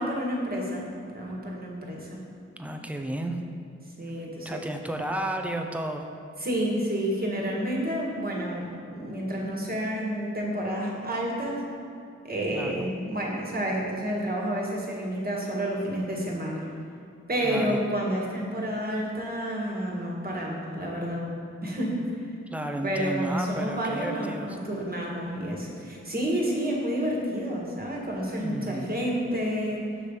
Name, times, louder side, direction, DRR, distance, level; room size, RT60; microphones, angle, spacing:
voice 1, 0.0-2.2 4.0-4.6 6.4-11.6 12.2-16.7 17.3-21.2 21.6-22.2 22.8-29.8, equal, 30° right, -2 dB, 1.5 m, -30 dB
voice 2, 2.6-3.4 4.4-6.1 12.5-12.8 17.4-17.8 22.5-24.6 28.4-28.9, right 1 dB, 5° right, 4 dB, 0.6 m, -32 dB
6.2 x 3.3 x 5.4 m, 2.4 s
cardioid pair, 45°, 30 cm